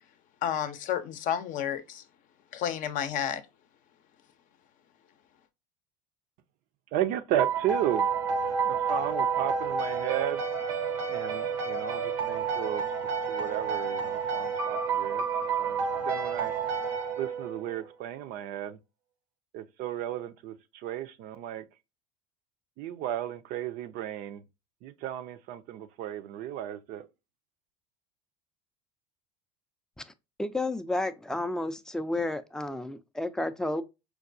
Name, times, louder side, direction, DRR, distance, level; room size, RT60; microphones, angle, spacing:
voice 1, 0.4-2.0 2.5-3.4, left 9 dB, 55° left, 0.6 m, -31 dB
voice 2, 6.9-8.1 8.7-10.4 11.1-12.8 13.3-15.3 15.6-15.8 16.1-16.5 17.2-18.8 19.5-21.6 22.8-24.4 24.8-27.1, right 11 dB, 60° right, 0.5 m, -34 dB
sound 1, 7.4-17.8, right 6 dB, 85° right, 0.8 m, -30 dB
voice 3, 30.4-33.8, left 2 dB, 5° left, 0.3 m, -31 dB
4.5 x 2.3 x 2.5 m
supercardioid pair, 95°, 16 cm